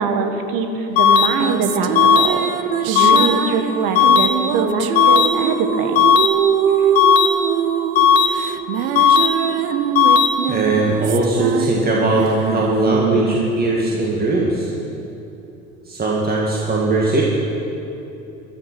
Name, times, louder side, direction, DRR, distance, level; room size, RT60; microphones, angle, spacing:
voice 1, 0.0-6.0 6.8-6.9, right 4 dB, 50° right, 6 dB, 1.6 m, -23 dB
sound 1, 1.0-1.3 2.0-2.3 3.0-3.3 4.0-4.3 5.0-5.3 6.0-6.3 7.0-7.3 8.0-8.3 9.0-9.3 10.0-10.3, left 8 dB, 65° left, 1.3 m, -13 dB
sound 2, 1.1-14.8, right 9 dB, 80° right, 0.6 m, -23 dB
voice 2, 10.5-14.7 15.9-17.2, right 2 dB, 20° right, -3 dB, 2.1 m, -19 dB
13.5 x 10.0 x 6.2 m, 2.9 s
hypercardioid pair, 65°, 41 cm